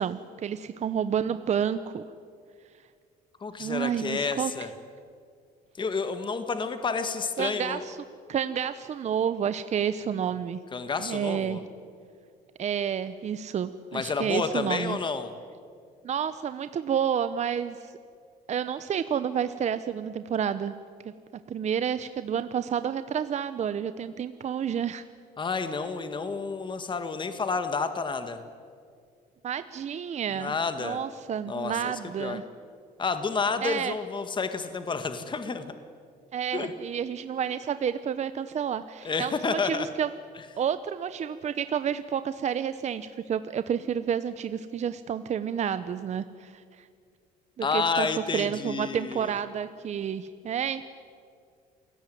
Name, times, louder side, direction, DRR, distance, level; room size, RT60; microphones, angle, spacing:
voice 1, 0.0-2.0 3.6-4.5 7.4-8.0 8.3-10.6 11.0-11.6 12.6-15.0 16.0-18.0 18.5-20.7 21.5-25.0 29.4-32.4 33.6-33.9 36.3-40.1 40.6-46.9 47.6-48.1 48.3-50.9, right 8 dB, 45° right, 12 dB, 0.9 m, -30 dB
voice 2, 3.4-4.7 5.8-7.9 10.7-11.6 13.9-15.3 25.4-28.4 30.3-31.0 31.5-32.4 33.0-35.7 36.5-36.7 39.0-39.9 47.6-49.3, left 4 dB, 30° left, 9 dB, 1.7 m, -30 dB
28.0 x 17.5 x 9.3 m, 2.2 s
cardioid pair, 110°, 17 cm